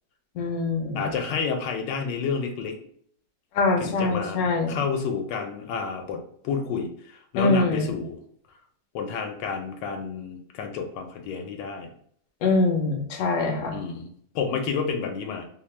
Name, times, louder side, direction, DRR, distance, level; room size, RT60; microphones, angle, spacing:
voice 1, 0.3-1.2 3.5-4.8 7.4-8.0 12.4-13.8, left 3 dB, 70° left, 2 dB, 1.0 m, -24 dB
voice 2, 0.9-2.8 3.8-4.4 4.7-8.2 8.9-11.9 13.7-14.1 14.3-15.5, left 5 dB, 85° left, 4 dB, 1.2 m, -30 dB
2.9 x 2.1 x 3.1 m, 0.63 s
omnidirectional pair, 1.9 m